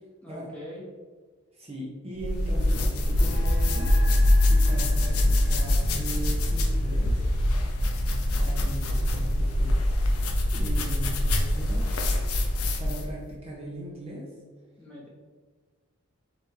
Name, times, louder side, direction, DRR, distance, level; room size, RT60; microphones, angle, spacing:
voice 1, 0.2-0.8 14.8-15.1, left 1 dB, 5° left, -5 dB, 0.9 m, -43 dB
voice 2, 1.5-4.2 4.5-7.3 8.4-10.3 10.5-11.9 12.8-14.3, right 1 dB, 25° right, -3 dB, 0.6 m, -38 dB
sound 1, 2.2-13.1, left 1 dB, 85° left, 0.6 m, -24 dB
sound 2, 3.1-7.8, left 1 dB, 50° left, 1.0 m, -46 dB
3.3 x 3.2 x 4.5 m, 1.4 s
head